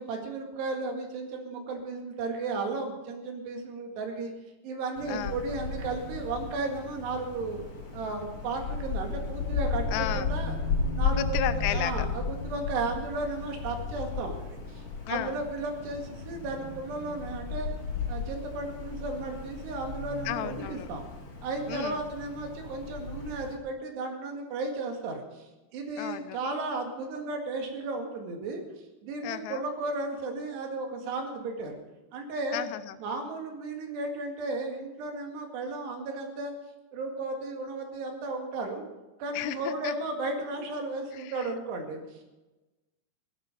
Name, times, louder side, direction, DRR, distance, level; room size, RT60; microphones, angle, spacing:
voice 1, 0.0-4.3 4.6-7.6 7.9-10.6 10.9-17.7 18.1-21.0 21.4-28.6 29.0-31.8 32.1-32.7 33.0-36.5 36.9-38.9 39.2-42.2, right 3 dB, 85° right, 3 dB, 4.2 m, -34 dB
Wind, 5.0-23.5, left 4 dB, 45° left, 4.0 m, -34 dB
voice 2, 5.1-5.4 9.9-10.3 11.1-12.1 15.1-15.4 20.3-20.9 21.7-22.0 26.0-26.4 29.2-29.6 32.5-33.0 39.3-39.9 41.2-41.5, left 13 dB, 85° left, 13 dB, 2.8 m, -33 dB
16.5 x 12.0 x 5.1 m, 1.1 s
omnidirectional pair, 4.7 m